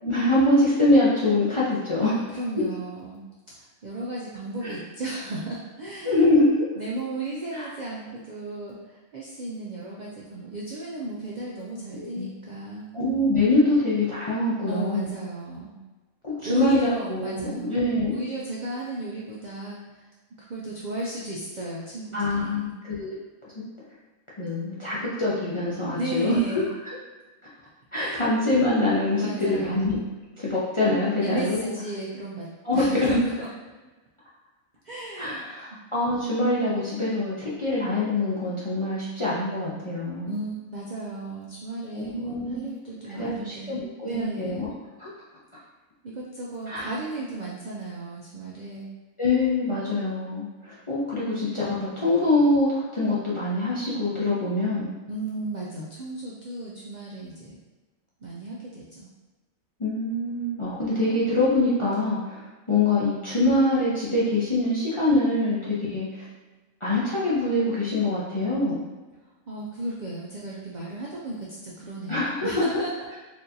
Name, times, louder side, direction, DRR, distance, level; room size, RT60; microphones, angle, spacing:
voice 1, 0.0-2.1 4.6-4.8 6.0-6.5 7.5-7.7 12.0-12.3 12.9-15.1 16.2-18.2 22.1-23.2 24.4-26.4 27.9-30.0 30.4-31.8 32.6-33.2 35.2-40.3 41.9-42.7 43.1-44.7 45.0-45.1 46.7-46.9 49.2-54.9 59.8-62.4 62.7-66.3 66.8-68.8 72.1-72.5, left 2 dB, 40° left, -8 dB, 0.4 m, -24 dB
voice 2, 2.0-3.2 3.6-6.2 6.8-12.9 14.6-15.8 16.4-20.0 20.4-22.7 26.0-26.7 27.9-28.3 29.2-30.1 31.2-33.5 34.8-35.4 35.7-35.8 40.3-43.8 44.0-44.7 46.0-48.9 55.1-57.6 58.2-59.1 69.5-72.9, right 2 dB, 70° right, -5 dB, 0.4 m, -35 dB
4.3 x 2.7 x 2.6 m, 1.2 s
omnidirectional pair, 1.4 m